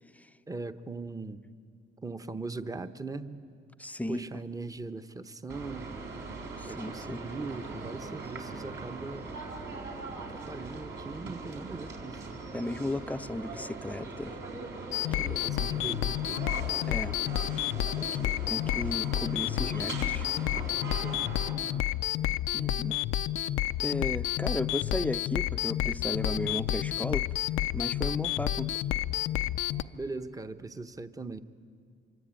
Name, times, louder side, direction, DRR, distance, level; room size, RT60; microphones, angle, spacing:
voice 1, 0.5-1.4 2.0-3.4 4.1-5.9 6.7-9.4 10.2-12.4 15.3-16.5 19.6-19.8 20.7-21.8 29.9-31.4, right 3 dB, 15° right, 10 dB, 1.0 m, -40 dB
voice 2, 3.8-4.3 6.6-7.2 12.5-14.3 15.2-15.4 16.9-17.2 18.2-20.3 22.5-23.0 23.8-27.3 27.7-28.7, left 2 dB, 5° left, 12 dB, 0.6 m, -35 dB
sound 1, 5.5-21.5, right 3 dB, 65° right, 4.9 m, -41 dB
sound 2, 14.9-29.8, left 12 dB, 80° left, 0.6 m, -30 dB
25.0 x 23.5 x 9.0 m, 2.2 s
cardioid pair, 90°, 20 cm